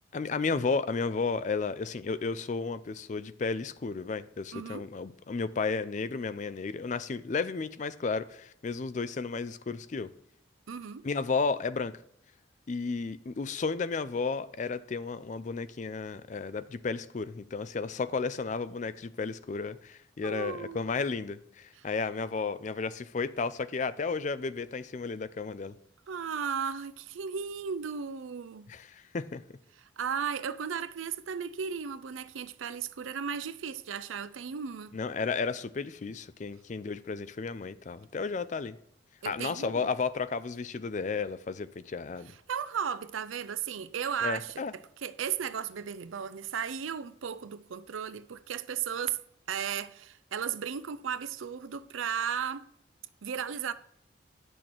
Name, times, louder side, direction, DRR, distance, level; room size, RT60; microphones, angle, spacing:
voice 1, 0.1-10.1 11.0-11.9 12.7-25.7 28.7-29.4 34.9-38.8 39.3-42.3 44.2-44.7, left 4 dB, 40° left, 0.4 m, -33 dB
voice 2, 4.5-4.9 10.7-11.1 20.2-20.8 21.8-21.9 26.1-28.7 30.0-34.9 39.2-39.9 42.5-44.6 45.0-49.2 49.5-52.7 53.2-53.7, right 7 dB, 85° right, 0.5 m, -35 dB
8.4 x 6.3 x 4.4 m
head